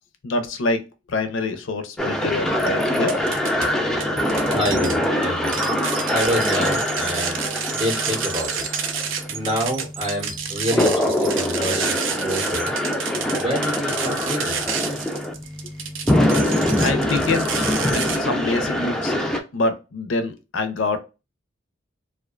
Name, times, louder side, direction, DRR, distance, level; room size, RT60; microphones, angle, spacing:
voice 1, 0.2-3.2 15.6-15.7 16.8-17.5 17.9-19.1 19.5-21.0, left 3 dB, 75° left, 9 dB, 0.5 m, -26 dB
sound 1, 2.0-19.4, left 1 dB, 5° left, 0.3 m, -24 dB
sound 2, 2.6-3.7 4.0-18.2, right 7 dB, 75° right, 0.4 m, -29 dB
voice 2, 4.5-5.6 6.1-7.4 7.7-8.6 9.3-12.7 13.4-14.6, equal, 25° right, -1 dB, 0.7 m, -27 dB
2.4 x 2.2 x 2.3 m, 0.29 s
head